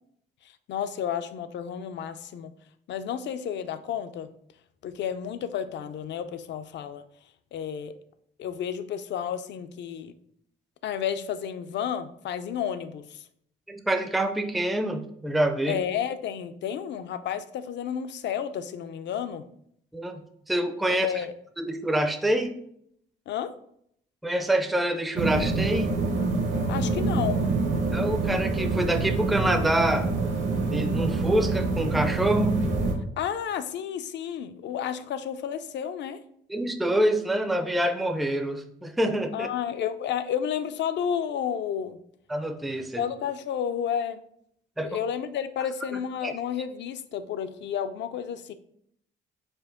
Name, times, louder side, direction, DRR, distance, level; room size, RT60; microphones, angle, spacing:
voice 1, 0.4-2.5 2.9-4.3 4.8-7.0 7.5-7.9 8.4-10.1 10.8-13.2 15.7-19.4 20.9-21.3 23.3-23.5 26.7-27.4 33.2-36.2 39.3-42.0 43.0-44.2 44.8-48.5, left 8 dB, 65° left, 11 dB, 0.4 m, -31 dB
voice 2, 13.7-15.8 19.9-20.2 20.5-21.1 21.6-22.5 24.2-26.0 27.9-30.1 30.6-32.6 36.5-39.5 42.3-43.0 44.8-44.9 46.2-46.3, right 1 dB, ahead, 6 dB, 0.4 m, -26 dB
sound 1, 25.2-32.9, right 3 dB, 70° right, 1.0 m, -26 dB
4.5 x 2.5 x 3.6 m, 0.69 s
cardioid pair, 90°, 20 cm